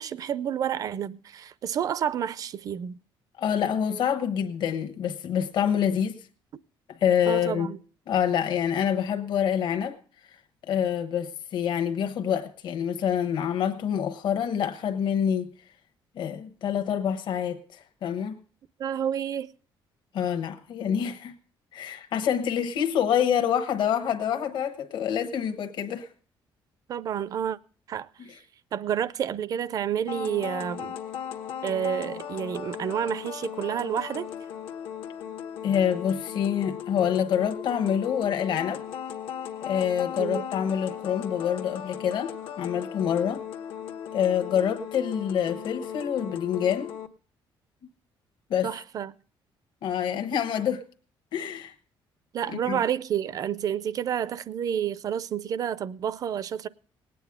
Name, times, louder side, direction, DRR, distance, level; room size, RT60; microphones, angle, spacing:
voice 1, 0.0-3.0 7.3-7.8 18.8-19.5 26.9-27.6 27.9-28.1 28.7-31.0 31.6-34.3 40.2-40.5 48.6-49.1 52.3-56.7, right 9 dB, 40° right, 0.4 m, -29 dB
voice 2, 3.4-6.2 7.0-7.7 8.1-10.0 10.7-15.5 16.2-18.4 20.1-21.3 21.7-26.1 35.6-38.8 39.6-43.4 44.1-46.9 48.5-48.7 49.8-50.8 51.3-51.7 52.5-52.8, left 8 dB, 60° left, 1.1 m, -26 dB
sound 1, 30.1-47.1, left 9 dB, 80° left, 1.2 m, -37 dB
19.0 x 9.3 x 3.6 m
cardioid pair, 170°, 9 cm